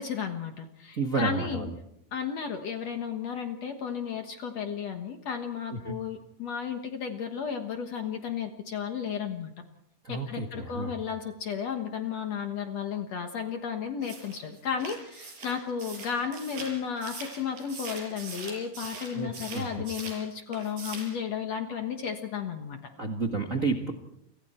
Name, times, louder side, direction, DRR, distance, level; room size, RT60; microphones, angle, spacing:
voice 1, 0.0-1.7 2.1-9.5 10.1-22.8, left 7 dB, 60° left, 5 dB, 1.9 m, -33 dB
voice 2, 1.0-1.8 5.7-6.0 10.0-10.9 19.1-19.7 23.0-23.9, right 4 dB, 80° right, 2 dB, 0.7 m, -30 dB
sound 1, 14.0-20.2 20.5-21.2, right 3 dB, 60° right, 8.0 m, -42 dB
30.0 x 25.5 x 4.4 m, 0.76 s
omnidirectional pair, 4.6 m